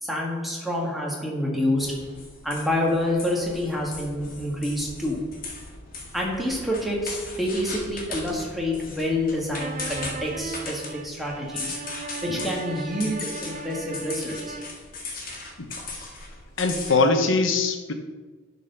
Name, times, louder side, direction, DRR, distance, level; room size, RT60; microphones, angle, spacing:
voice 1, 0.0-5.4 6.1-11.8 12.2-14.6, left 1 dB, ahead, -3 dB, 1.6 m, -28 dB
sound 1, 1.8-16.9, left 3 dB, 45° left, 1.8 m, -38 dB
sound 2, 9.5-14.9, right 3 dB, 35° right, 0.4 m, -37 dB
voice 2, 16.6-17.9, left 3 dB, 70° left, 6 dB, 1.0 m, -22 dB
11.0 x 4.2 x 5.4 m, 1.3 s
head